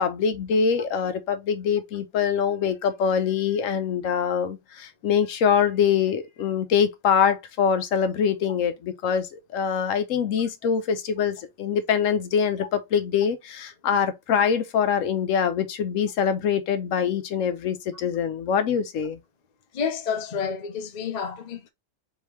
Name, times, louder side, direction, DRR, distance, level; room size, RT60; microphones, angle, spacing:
voice 1, 0.0-19.2, left 7 dB, 70° left, 1.1 m, -24 dB
voice 2, 19.7-21.7, left 6 dB, 50° left, 0.5 m, -30 dB
3.6 x 3.3 x 3.0 m
omnidirectional pair, 1.5 m